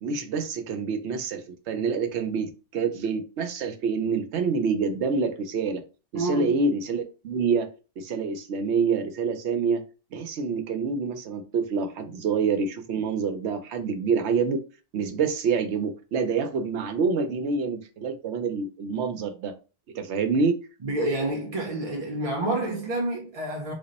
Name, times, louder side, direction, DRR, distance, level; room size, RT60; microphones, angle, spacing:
voice 1, 0.0-5.8 6.1-7.7 8.0-9.8 10.1-14.6 14.9-19.5 19.9-20.6, right 5 dB, 70° right, 0.8 m, -27 dB
voice 2, 6.1-6.5 20.8-23.7, right 1 dB, 45° right, 0.5 m, -28 dB
3.5 x 2.1 x 3.9 m
omnidirectional pair, 1.3 m